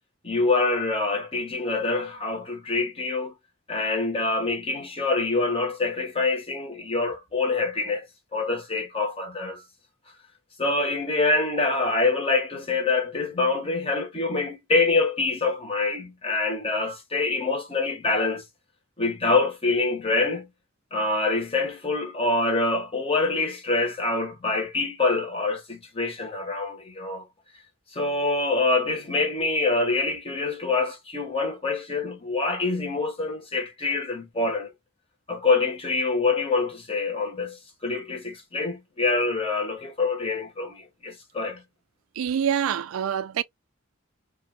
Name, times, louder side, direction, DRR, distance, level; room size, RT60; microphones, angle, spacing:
voice 1, 0.2-3.4 3.7-8.1 8.3-9.6 10.6-18.4 19.0-20.5 20.9-27.3 27.9-34.7 35.3-41.6, left 3 dB, 30° left, 0.9 m, -25 dB
voice 2, 42.2-43.4, right 8 dB, 90° right, 0.4 m, -26 dB
2.4 x 2.2 x 3.0 m
head